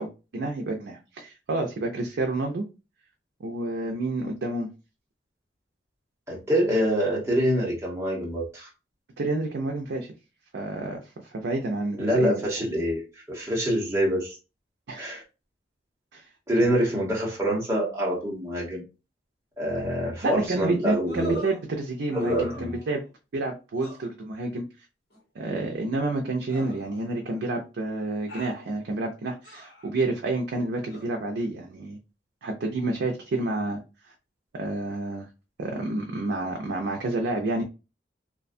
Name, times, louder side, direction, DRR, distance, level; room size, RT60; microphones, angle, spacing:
voice 1, 0.0-2.6 3.4-4.7 9.2-10.1 10.5-12.4 14.9-15.1 16.1-16.2 16.6-16.7 20.2-23.0 23.3-24.6 25.4-32.0 32.4-33.8 34.1-34.2 34.5-35.3 35.6-37.6, right 2 dB, 70° right, 0.4 m, -29 dB
voice 2, 6.3-8.7 12.0-14.4 15.0-15.2 16.5-18.8 19.6-21.4 22.1-22.8, equal, 15° right, 0.9 m, -26 dB
sound 1, 21.1-21.6 22.1-23.1 23.8-24.0 25.1-25.2 26.5-27.4 28.3-28.6 29.4-29.9 30.9-31.1, right 1 dB, 65° left, 1.2 m, -43 dB
2.4 x 2.2 x 2.5 m
head